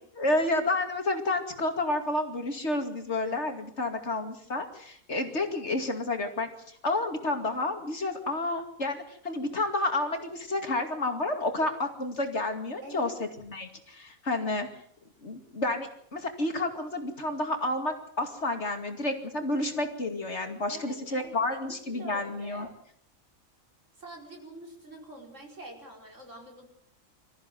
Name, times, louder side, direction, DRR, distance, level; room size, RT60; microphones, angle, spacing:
voice 1, 0.2-14.7 15.2-22.7, left 2 dB, 55° left, 5 dB, 2.7 m, -30 dB
voice 2, 12.8-13.3 20.7-22.7 24.0-26.6, right 1 dB, 65° right, 1 dB, 5.1 m, -46 dB
24.5 x 14.5 x 7.8 m, 0.66 s
omnidirectional pair, 1.4 m